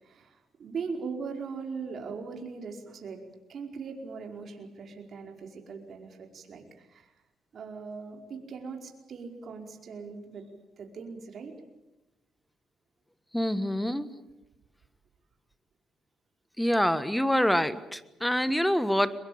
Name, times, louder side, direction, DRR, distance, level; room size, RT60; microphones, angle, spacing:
voice 1, 0.0-3.2 3.5-7.1 7.5-10.5 10.8-11.5, right 5 dB, 55° right, 3 dB, 4.9 m, -40 dB
voice 2, 13.3-14.1 16.6-19.1, equal, 5° left, 13 dB, 1.5 m, -26 dB
23.5 x 22.0 x 8.8 m, 1.0 s
cardioid pair, 90°, 0 cm